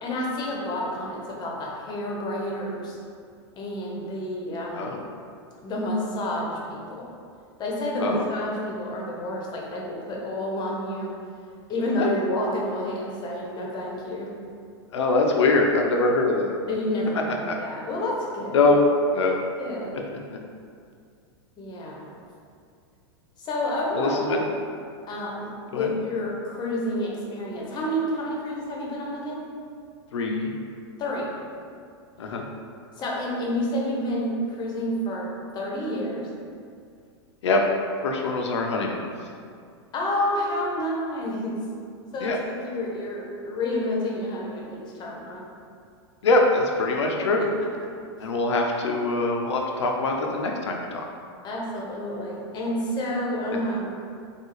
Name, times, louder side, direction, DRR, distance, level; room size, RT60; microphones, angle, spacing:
voice 1, 0.0-3.0 3.6-5.1 5.6-7.1 7.6-11.1 11.7-14.3 16.7-18.6 19.6-20.0 21.6-22.1 23.4-24.4 25.1-29.5 31.0-31.3 33.0-36.3 39.9-41.6 42.1-45.4 47.0-47.1 51.4-53.9, left 1 dB, 30° left, -3 dB, 0.8 m, -29 dB
voice 2, 14.9-16.6 17.5-17.6 18.5-18.8 19.1-19.4 23.9-24.5 25.7-25.9 30.1-30.5 32.2-32.4 37.4-37.7 38.0-39.1 42.2-42.4 46.2-47.5 48.2-51.1, left 2 dB, 85° left, 1 dB, 0.5 m, -23 dB
3.6 x 2.4 x 3.0 m, 2.3 s
hypercardioid pair, 105°, 14 cm